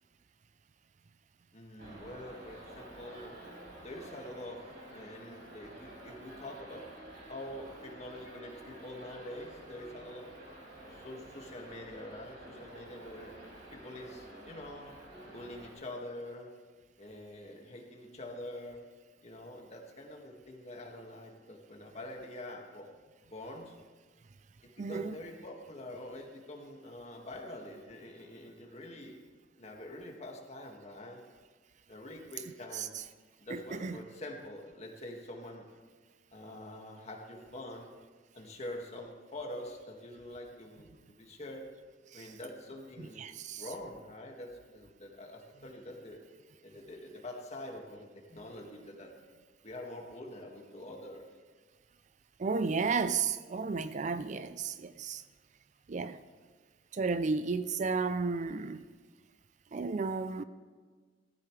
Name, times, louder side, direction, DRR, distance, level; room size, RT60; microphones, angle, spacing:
voice 1, 1.5-3.4 3.8-4.6 4.9-6.8 7.3-10.3 10.9-13.3 13.7-15.0 15.2-16.5 17.0-18.9 19.2-22.9 23.3-23.8 24.6-29.2 29.6-31.2 31.9-32.9 33.4-35.6 36.3-37.9 38.3-40.9 41.2-41.6 42.1-43.3 43.6-46.2 46.6-49.1 49.6-51.2, left 1 dB, 40° left, 1.9 m, -45 dB
sound 1, 1.8-15.7, right 1 dB, 65° right, 5.0 m, -50 dB
voice 2, 24.8-25.1 32.7-33.0 33.5-34.0 42.1-42.3 43.0-43.6 52.4-55.2 55.9-56.2 56.9-58.8 59.7-60.4, right 4 dB, 40° right, 0.4 m, -33 dB
18.5 x 14.0 x 3.3 m
head